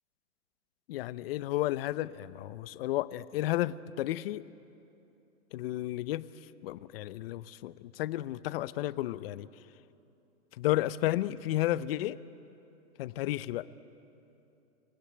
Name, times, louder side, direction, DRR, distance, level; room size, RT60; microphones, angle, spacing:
voice 1, 0.9-4.4 5.5-6.3 6.6-9.5 10.6-12.2 13.0-13.7, left 15 dB, 45° left, 17 dB, 0.7 m, -32 dB
27.5 x 16.0 x 9.9 m, 2.8 s
hypercardioid pair, 140°, 42 cm